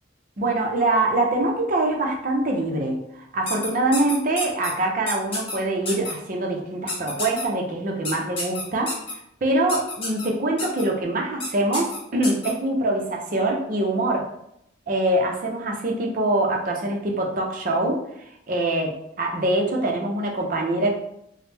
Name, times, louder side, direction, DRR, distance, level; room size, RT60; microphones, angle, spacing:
voice 1, 0.4-9.0 9.4-14.3 14.9-18.0 18.5-20.9, right 2 dB, 50° right, 1 dB, 0.5 m, -24 dB
sound 1, 3.5-4.7 5.1-5.5 5.8-6.1 6.9-7.4 8.0-9.1 9.7-10.3 10.6-10.8 11.4-11.5 11.7-12.5, left 2 dB, 30° left, 0.8 m, -29 dB
3.0 x 2.0 x 3.3 m, 0.76 s
head